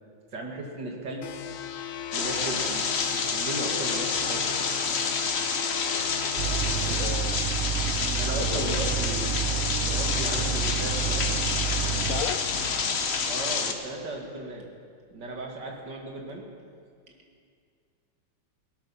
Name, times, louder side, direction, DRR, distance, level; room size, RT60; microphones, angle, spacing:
voice 1, 0.3-1.2 2.1-4.4 6.4-7.0 8.2-9.4 9.8-11.3 13.3-14.7 15.1-16.4, right 2 dB, 60° right, 0 dB, 2.5 m, -36 dB
sound 1, 1.2-7.0, left 9 dB, 90° left, 1.7 m, -37 dB
sound 2, 2.1-13.7, left 5 dB, 45° left, 0.9 m, -28 dB
sound 3, 6.4-12.2, right 7 dB, 80° right, 0.6 m, -30 dB
voice 2, 6.8-7.4 8.4-8.7 12.1-12.4, left 8 dB, 75° left, 8 dB, 0.8 m, -34 dB
17.5 x 13.0 x 5.7 m, 2.2 s
omnidirectional pair, 2.2 m